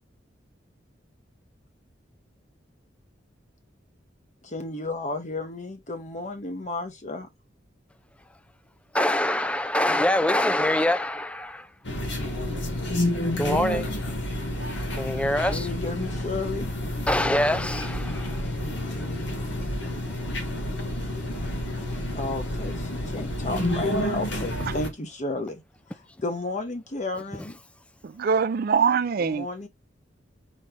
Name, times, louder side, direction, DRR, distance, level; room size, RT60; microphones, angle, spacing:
voice 1, 4.4-7.3 15.5-16.7 22.1-25.6 26.2-27.6 29.2-29.7, left 2 dB, 40° left, 1.1 m, -33 dB
voice 2, 8.9-11.7 13.4-13.9 14.9-15.7 17.1-18.5, left 1 dB, 5° left, 0.4 m, -24 dB
sound 1, 11.8-24.9, left 1 dB, 75° left, 1.6 m, -29 dB
voice 3, 28.0-29.5, right 6 dB, 55° right, 0.4 m, -23 dB
4.5 x 3.1 x 3.8 m
head